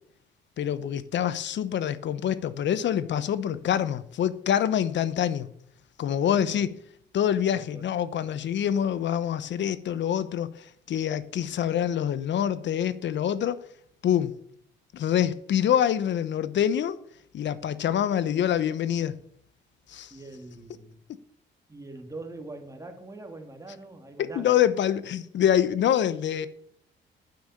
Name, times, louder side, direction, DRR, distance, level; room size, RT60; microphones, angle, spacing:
voice 1, 0.6-5.5 6.0-6.8 7.1-13.6 14.0-14.3 14.9-17.0 17.3-19.2 19.9-20.1 24.2-26.5, left 10 dB, 65° left, 0.9 m, -26 dB
voice 2, 6.2-6.7 7.5-7.9 17.9-18.0 20.1-21.0 21.7-24.5, right 2 dB, 15° right, 2.5 m, -43 dB
9.6 x 7.9 x 8.5 m
cardioid pair, 90°, 20 cm